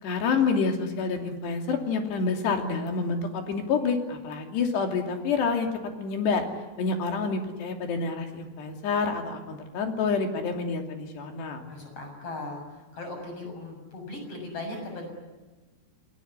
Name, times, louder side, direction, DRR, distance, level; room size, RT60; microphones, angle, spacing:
voice 1, 0.0-5.7 6.0-6.5 6.8-11.6, left 4 dB, 65° left, 4 dB, 4.7 m, -28 dB
voice 2, 11.7-15.1, left 2 dB, 30° left, 3 dB, 7.8 m, -38 dB
29.0 x 21.0 x 9.9 m, 1.2 s
omnidirectional pair, 5.4 m